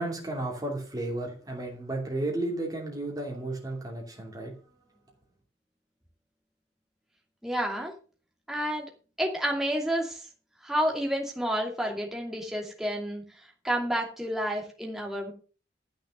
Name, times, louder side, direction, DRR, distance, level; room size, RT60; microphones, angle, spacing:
voice 1, 0.0-4.5, right 2 dB, 20° right, -1 dB, 2.8 m, -33 dB
voice 2, 7.4-7.9 8.5-8.9 9.2-10.2 10.6-13.2 13.6-15.3, equal, ahead, -1 dB, 2.5 m, -30 dB
13.0 x 6.4 x 6.6 m, 0.36 s
head